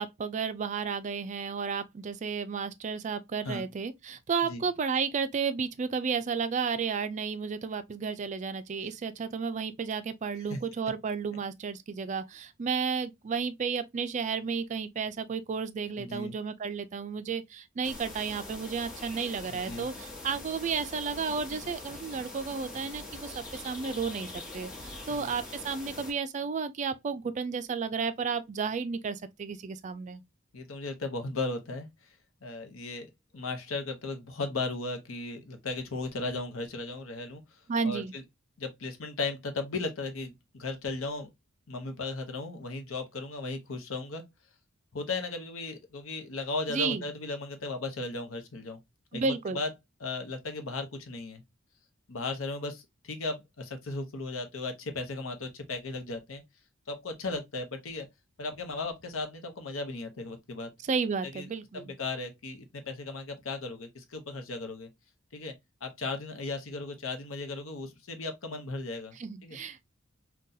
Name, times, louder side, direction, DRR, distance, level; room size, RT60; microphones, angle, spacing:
voice 1, 0.0-30.2 37.7-38.1 46.7-47.1 49.1-49.6 60.8-61.9 69.2-69.8, right 5 dB, 35° right, 0.3 m, -32 dB
voice 2, 16.0-16.3 19.5-19.9 25.1-25.3 30.5-31.9 32.4-33.1 33.3-37.4 37.8-38.2 38.6-41.3 41.7-44.2 44.9-48.8 49.1-49.7 50.0-51.4 52.1-56.4 56.9-58.1 58.4-60.7 61.2-61.5 61.7-64.9 65.3-65.5 65.8-69.2 69.4-69.6, left 3 dB, 75° left, 0.8 m, -36 dB
sound 1, 17.8-26.1, left 2 dB, 40° left, 1.2 m, -43 dB
3.8 x 2.3 x 2.6 m
head